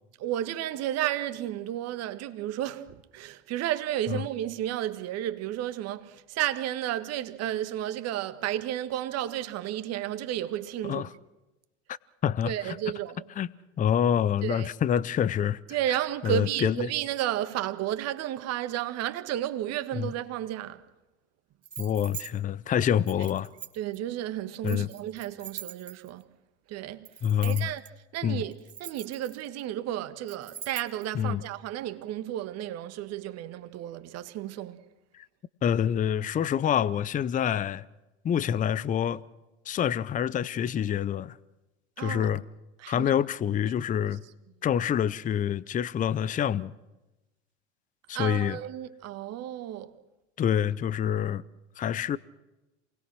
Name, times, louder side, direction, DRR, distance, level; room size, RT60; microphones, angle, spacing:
voice 1, 0.2-11.1 12.4-13.3 14.4-14.7 15.7-20.8 23.7-26.2 26.7-27.1 27.4-27.8 28.1-28.5 28.8-34.8 42.0-42.3 42.8-43.1 48.1-50.0, right 12 dB, 45° right, 1.7 m, -32 dB
voice 2, 12.2-12.8 13.4-13.5 13.8-15.6 16.2-16.9 20.0-20.1 21.8-23.5 24.6-24.9 27.2-27.7 28.2-28.4 31.1-31.4 35.1-35.3 35.6-37.8 38.2-39.2 39.7-41.4 42.0-42.4 42.9-44.2 44.6-46.7 48.1-48.6 50.4-51.4 51.8-52.2, left 9 dB, 20° left, 0.7 m, -26 dB
sound 1, 21.6-22.3 23.1-24.0 24.6-26.2 27.0-27.9 28.5-29.6 30.3-31.0, right 8 dB, 85° right, 2.0 m, -42 dB
28.0 x 20.0 x 6.2 m
hypercardioid pair, 85°, 35 cm